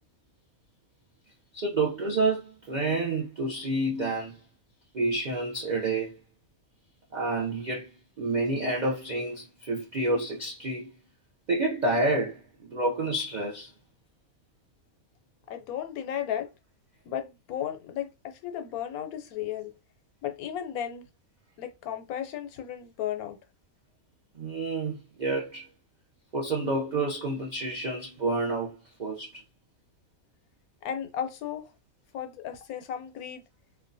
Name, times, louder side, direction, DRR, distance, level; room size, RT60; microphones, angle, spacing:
voice 1, 1.5-4.4 4.9-6.2 7.1-7.9 8.2-11.0 11.5-13.7 24.4-25.7 26.3-29.4, right 2 dB, 75° right, 0.4 m, -29 dB
voice 2, 15.5-16.5 17.1-19.7 20.2-21.1 21.6-23.4 30.8-31.7 32.1-33.4, left 10 dB, 90° left, 1.1 m, -34 dB
2.4 x 2.2 x 2.5 m
omnidirectional pair, 1.5 m